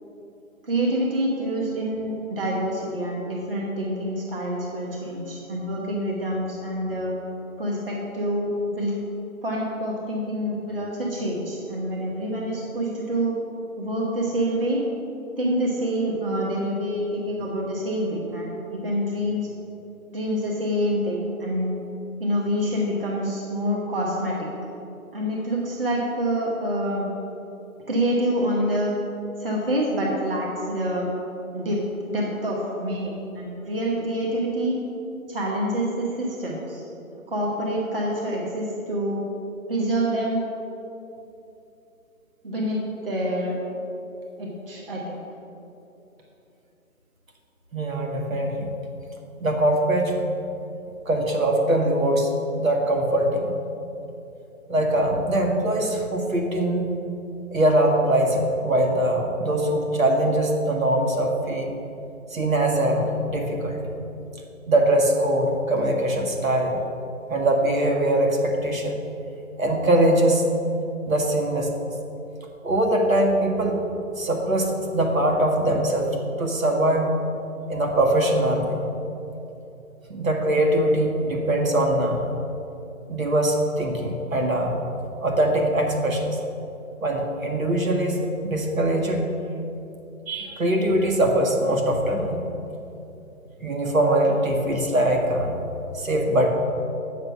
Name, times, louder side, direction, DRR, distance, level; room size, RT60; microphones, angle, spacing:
voice 1, 0.6-7.1 7.6-9.0 9.4-13.3 13.8-14.8 15.4-19.5 20.1-21.8 22.2-24.5 25.1-27.0 27.9-29.0 29.4-31.1 31.5-34.8 35.3-36.8 37.3-39.2 39.7-40.5 42.4-43.6 44.4-45.2, equal, 40° right, -3 dB, 1.3 m, -26 dB
voice 2, 47.7-48.7 49.4-50.1 51.1-52.3 52.6-53.5 54.7-56.8 57.5-61.7 62.3-63.8 64.7-66.8 67.3-69.0 69.6-70.5 71.1-71.7 72.6-73.8 74.2-77.2 77.7-78.8 80.1-82.3 83.1-84.8 85.2-86.4 87.0-89.2 90.3-92.4 93.6-95.6 95.9-96.5, right 1 dB, 65° right, 1 dB, 1.7 m, -22 dB
8.2 x 6.7 x 6.1 m, 2.9 s
hypercardioid pair, 175°, 43 cm